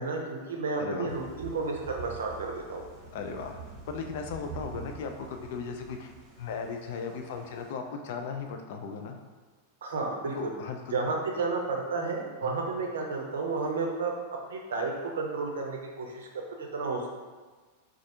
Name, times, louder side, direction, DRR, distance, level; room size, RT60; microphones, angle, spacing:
voice 1, 0.0-2.8 9.8-10.5 10.9-14.1 14.5-16.3 16.6-17.1, right 3 dB, 65° right, 1 dB, 0.5 m, -32 dB
voice 2, 0.8-1.1 3.1-3.6 3.9-9.2 10.3-10.8 12.4-12.6, left 5 dB, 50° left, 4 dB, 0.3 m, -37 dB
Thunder / Rain, 1.1-7.7, right 4 dB, 25° right, 0.9 m, -46 dB
4.1 x 2.4 x 2.6 m, 1.4 s
figure-of-eight pair, 90°, 0 cm